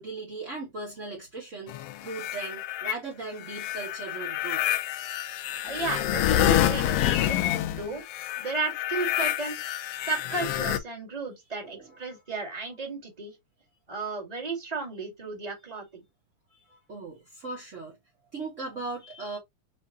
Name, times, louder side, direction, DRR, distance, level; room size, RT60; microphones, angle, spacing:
voice 1, 0.0-4.7 11.6-12.2 16.5-17.9 18.3-19.4, right 3 dB, 40° right, 1.1 m, -38 dB
sound 1, 1.7-2.9 3.4-10.8, left 12 dB, 80° left, 1.4 m, -28 dB
voice 2, 5.6-8.0 8.3-9.6 10.0-13.3 13.9-15.8, right 3 dB, 15° right, 1.6 m, -34 dB
6.4 x 2.6 x 2.5 m
omnidirectional pair, 3.3 m